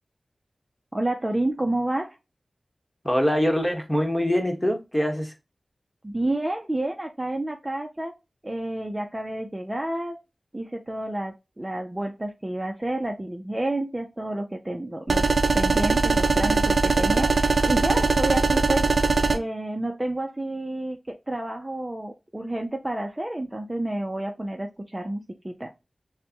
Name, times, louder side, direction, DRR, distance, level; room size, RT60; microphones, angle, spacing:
voice 1, 0.9-2.2 6.0-8.1 8.4-10.2 10.5-15.3 15.5-18.9 19.3-25.7, right 1 dB, 25° right, 0.8 m, -30 dB
voice 2, 3.0-5.3, equal, 5° left, 1.4 m, -23 dB
sound 1, 15.1-19.4, right 4 dB, 75° right, 0.6 m, -21 dB
6.7 x 2.3 x 2.9 m
cardioid pair, 45°, 0 cm